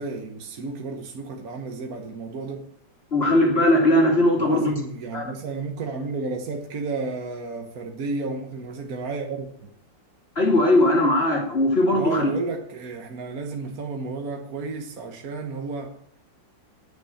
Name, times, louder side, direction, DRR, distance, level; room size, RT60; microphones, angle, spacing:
voice 1, 0.0-2.6 4.4-9.7 11.9-16.0, right 3 dB, 55° right, 1.5 m, -32 dB
voice 2, 3.1-4.7 5.1-5.2 10.4-12.3, left 1 dB, 30° left, 2.9 m, -19 dB
9.8 x 6.5 x 8.3 m
omnidirectional pair, 2.0 m